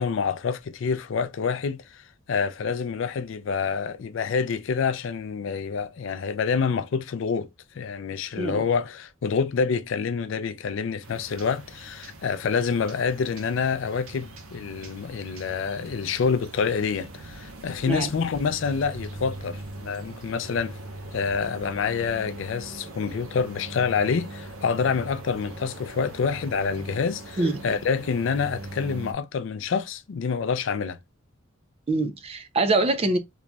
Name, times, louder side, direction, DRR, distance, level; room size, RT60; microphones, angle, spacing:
voice 1, 0.0-2.0 2.3-7.5 7.7-20.8 21.1-31.0, left 5 dB, 60° left, 0.4 m, -27 dB
sound 1, 11.0-29.1, right 2 dB, 80° right, 0.9 m, -41 dB
voice 2, 31.9-33.2, right 2 dB, 30° right, 0.4 m, -24 dB
3.9 x 3.0 x 2.2 m
head